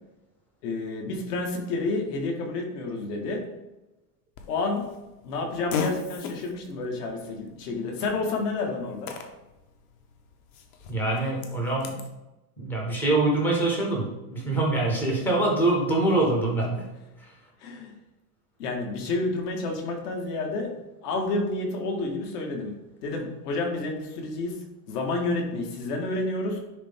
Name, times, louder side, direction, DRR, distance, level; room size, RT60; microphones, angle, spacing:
voice 1, 0.6-3.4 4.5-4.9 5.2-9.1 17.6-17.9 18.6-20.7 21.0-22.7 23.0-24.6 24.9-26.6, left 2 dB, 80° left, 1 dB, 2.0 m, -30 dB
Fart, 4.3-12.1, left 5 dB, 65° left, 1.2 m, -38 dB
voice 2, 10.9-12.0 12.6-16.9 17.2-17.3, right 2 dB, 5° left, -2 dB, 0.4 m, -24 dB
10.5 x 3.5 x 3.7 m, 1.0 s
supercardioid pair, 175°, 47 cm